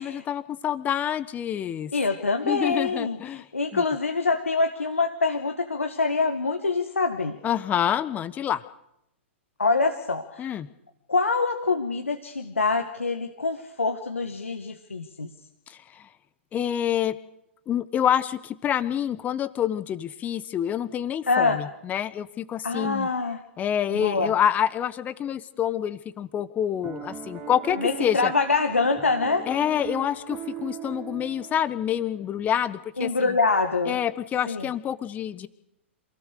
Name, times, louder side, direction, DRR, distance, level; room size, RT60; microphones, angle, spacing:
voice 1, 0.0-1.9 2.4-3.4 3.7-3.8 7.4-8.6 10.4-10.7 15.7-16.1 16.5-17.2 17.7-23.1 23.6-28.3 29.5-33.4 33.8-35.5, left 10 dB, 25° left, 14 dB, 1.4 m, -27 dB
voice 2, 1.9-7.4 9.6-10.5 11.1-15.3 21.3-21.6 22.6-23.4 23.9-24.3 27.8-29.4 33.0-34.0 34.5-34.7, left 3 dB, 85° left, 5 dB, 2.0 m, -25 dB
Piano, 26.8-32.1, right 8 dB, 30° right, 3.7 m, -39 dB
27.5 x 18.0 x 6.8 m, 0.80 s
figure-of-eight pair, 115°, 7 cm